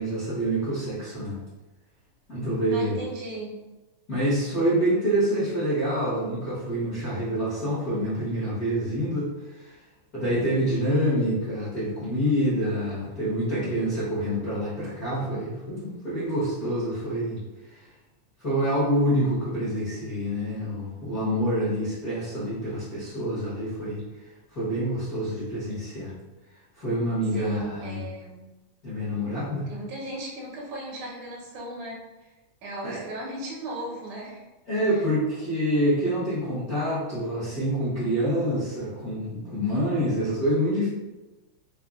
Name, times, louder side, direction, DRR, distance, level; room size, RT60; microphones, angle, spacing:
voice 1, 0.0-1.4 2.3-2.9 4.1-9.7 10.1-17.4 17.7-17.9 18.4-24.0 24.5-26.1 26.8-28.0 28.8-29.7 32.8-33.0 34.7-40.9, equal, 45° left, -12 dB, 1.2 m, -27 dB
voice 2, 2.7-3.6 27.3-28.5 29.7-32.3 32.6-34.4 34.8-35.0, right 1 dB, 80° right, -3 dB, 2.3 m, -37 dB
5.5 x 2.2 x 2.4 m, 1.1 s
omnidirectional pair, 3.4 m